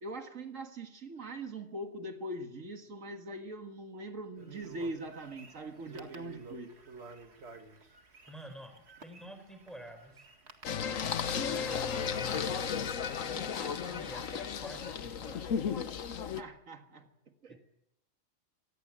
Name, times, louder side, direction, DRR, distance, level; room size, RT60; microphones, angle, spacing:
voice 1, 0.0-6.8 16.4-17.1 17.4-17.6, right 1 dB, 80° right, 2.2 m, -42 dB
sound 1, 4.3-15.8, right 4 dB, 55° right, 2.2 m, -54 dB
voice 2, 8.3-8.7 9.0-10.2 11.4-15.8 17.5-17.6, right 1 dB, ahead, 4.7 m, -49 dB
Singing, 10.6-16.4, left 7 dB, 80° left, 1.4 m, -34 dB
25.5 x 19.0 x 7.7 m
omnidirectional pair, 1.3 m